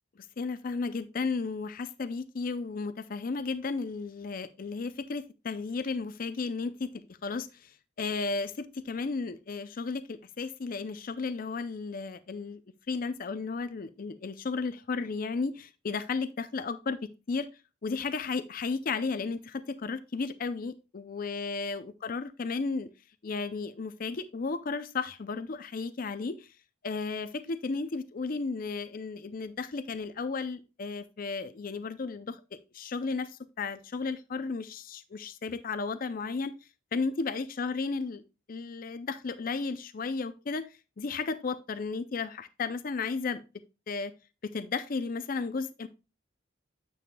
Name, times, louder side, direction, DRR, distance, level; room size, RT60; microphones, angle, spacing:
voice 1, 0.4-6.9 7.2-12.6 12.9-17.0 17.3-17.5 17.8-22.9 23.2-26.5 26.8-36.5 36.9-38.2 38.5-43.4 43.9-44.1 44.4-45.9, left 4 dB, 45° left, 0.5 m, -34 dB
9.2 x 7.1 x 2.3 m
head